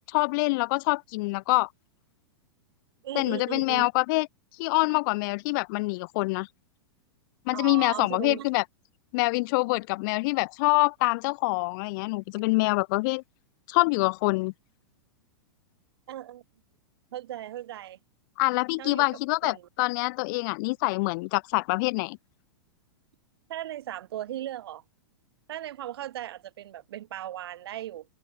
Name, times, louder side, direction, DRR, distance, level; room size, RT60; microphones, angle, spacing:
voice 1, 0.1-1.7 3.1-4.3 4.6-6.5 7.5-8.6 9.1-13.2 13.7-14.5 18.4-22.2, left 26 dB, 50° left, 0.6 m, -25 dB
voice 2, 3.0-3.9 7.5-8.5 16.1-16.4 17.1-18.0 18.8-19.0 19.4-19.7 23.5-24.8 25.5-28.1, right 12 dB, 70° right, 3.6 m, -37 dB
hypercardioid pair, 115°, 13 cm